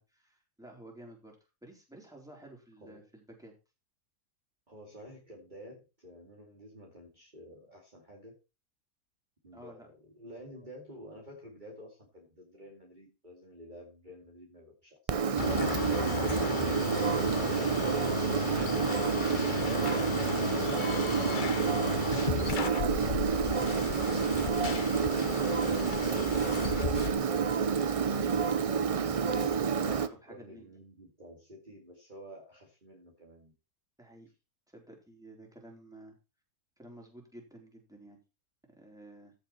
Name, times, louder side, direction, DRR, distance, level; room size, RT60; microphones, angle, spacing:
voice 1, 0.0-1.4 1.6-3.5 9.5-9.9 27.9-28.2 29.8-30.7 34.0-34.3 34.7-36.2 36.8-38.2 38.8-39.3, right 1 dB, ahead, 0 dB, 4.1 m, -52 dB
voice 2, 4.7-8.3 9.4-16.4 29.7-33.5, equal, 30° right, -1 dB, 2.6 m, -51 dB
Engine, 15.1-30.1, right 6 dB, 65° right, 0.3 m, -29 dB
sound 1, 15.4-27.1, left 7 dB, 45° left, 0.7 m, -35 dB
15.0 x 6.8 x 4.4 m, 0.29 s
omnidirectional pair, 1.6 m